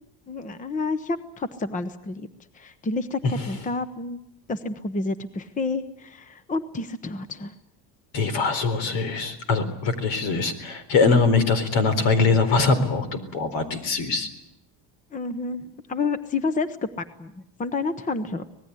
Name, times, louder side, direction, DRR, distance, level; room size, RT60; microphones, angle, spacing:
voice 1, 0.3-2.3 2.5-4.2 4.5-7.5 15.1-16.9 17.2-18.5, left 3 dB, 15° left, 12 dB, 0.9 m, -29 dB
voice 2, 8.1-14.3, left 4 dB, 70° left, 13 dB, 4.1 m, -22 dB
25.5 x 19.0 x 9.7 m, 0.81 s
cardioid pair, 150°, 47 cm